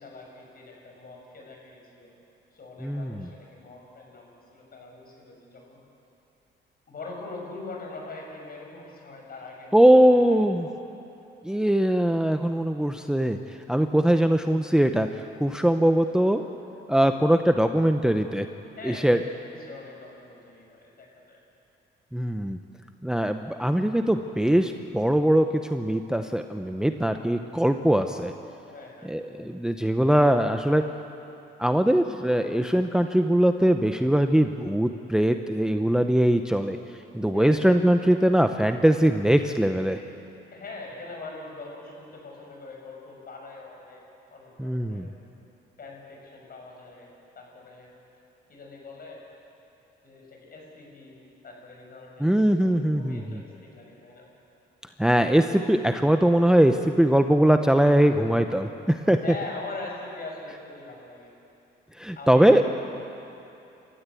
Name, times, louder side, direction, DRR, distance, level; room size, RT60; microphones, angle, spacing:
voice 1, 0.0-2.1 2.5-5.8 6.9-11.0 18.8-19.1 19.5-21.4 28.7-29.1 37.3-37.6 40.5-44.0 44.3-45.1 45.8-47.9 48.5-49.2 50.0-54.3 59.2-61.3 62.2-62.7, left 3 dB, 50° left, 0 dB, 6.6 m, -43 dB
voice 2, 2.8-3.3 9.7-10.7 11.4-16.4 16.9-18.5 18.8-19.2 22.1-22.6 23.0-28.3 29.1-30.8 31.6-36.8 37.1-40.0 44.6-45.1 52.2-53.4 55.0-59.2 62.0-62.6, right 1 dB, 5° right, 7 dB, 0.9 m, -21 dB
29.0 x 13.5 x 8.4 m, 2.8 s
cardioid pair, 90°, 20 cm